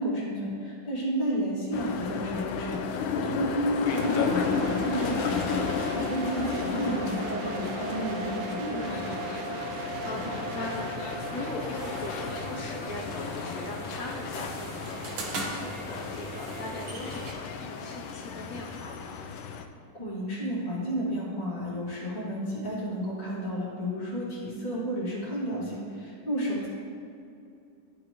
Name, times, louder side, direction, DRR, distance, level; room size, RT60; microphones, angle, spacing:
voice 1, 0.0-9.2 19.9-26.7, equal, 20° left, -9 dB, 1.8 m, -32 dB
sound 1, 1.7-19.6, left 6 dB, 85° left, 1.4 m, -34 dB
sound 2, 3.9-16.7, right 3 dB, 85° right, 1.4 m, -38 dB
voice 2, 6.9-7.5 10.0-19.1 26.6-26.7, left 1 dB, 65° left, -1 dB, 0.8 m, -40 dB
sound 3, 11.7-17.3, right 2 dB, 70° right, 1.7 m, -40 dB
11.5 x 5.3 x 2.9 m, 2.7 s
omnidirectional pair, 2.2 m